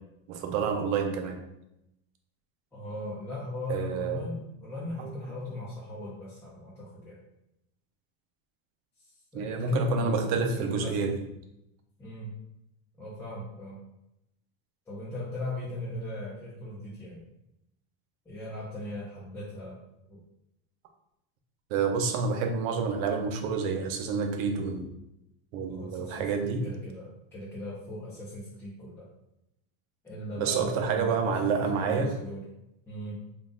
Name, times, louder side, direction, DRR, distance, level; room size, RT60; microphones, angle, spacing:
voice 1, 0.3-1.4 3.7-4.2 5.0-5.1 9.3-11.2 21.7-24.9 25.5-26.6 30.4-32.1, right 5 dB, 75° right, 4 dB, 0.7 m, -28 dB
voice 2, 2.7-7.2 9.0-11.1 12.0-12.3 13.0-13.8 14.9-17.2 18.2-19.8 20.1-20.2 25.7-29.1 30.0-32.4 32.8-33.2, left 1 dB, 5° left, -10 dB, 0.7 m, -38 dB
3.8 x 2.4 x 3.6 m, 0.85 s
cardioid pair, 160°, 40 cm